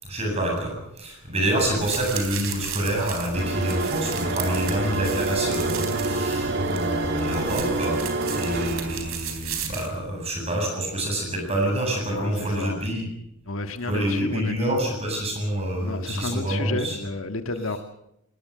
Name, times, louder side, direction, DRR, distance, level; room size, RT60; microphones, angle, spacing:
voice 1, 0.0-13.1 13.8-17.0, right 1 dB, 30° right, 1 dB, 7.9 m, -27 dB
sound 1, 1.6-9.9, right 7 dB, 70° right, 3.9 m, -35 dB
sound 2, 3.3-9.3, right 2 dB, 50° right, 2.2 m, -27 dB
voice 2, 12.1-12.8 13.5-14.8 15.8-17.8, left 2 dB, 70° left, 7 dB, 1.7 m, -31 dB
20.0 x 19.0 x 7.8 m, 0.78 s
head